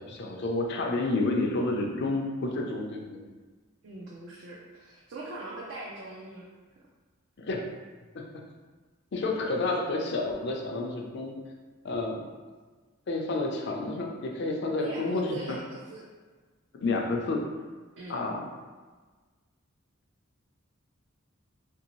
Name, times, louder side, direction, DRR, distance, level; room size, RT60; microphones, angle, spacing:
voice 1, 0.0-3.2 7.4-7.6 8.1-8.4 9.1-11.4 11.8-12.2 13.1-15.6 16.8-17.4 18.1-18.5, left 2 dB, 55° left, 1 dB, 0.5 m, -30 dB
voice 2, 3.8-6.5 14.8-16.0 18.0-18.2, right 2 dB, 60° right, -5 dB, 0.5 m, -41 dB
2.9 x 2.6 x 3.0 m, 1.4 s
head